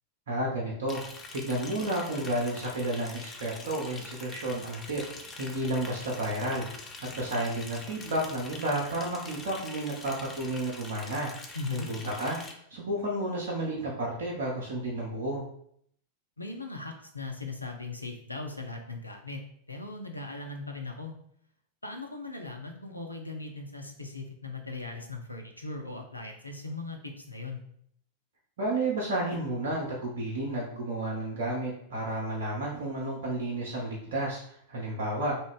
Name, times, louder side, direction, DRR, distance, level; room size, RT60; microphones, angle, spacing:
voice 1, 0.3-1.0 1.3-5.0 5.4-6.7 7.0-11.3 11.7-12.4 12.7-15.4 28.6-35.4, right 1 dB, 60° right, -3 dB, 0.6 m, -31 dB
Liquid, 0.9-12.5, left 3 dB, 20° left, 0.5 m, -44 dB
voice 2, 11.5-11.9 16.4-19.4 19.7-21.1 21.8-27.6, left 3 dB, 85° left, 3 dB, 0.4 m, -39 dB
2.5 x 2.2 x 3.5 m, 0.67 s
figure-of-eight pair, 90°, 0 cm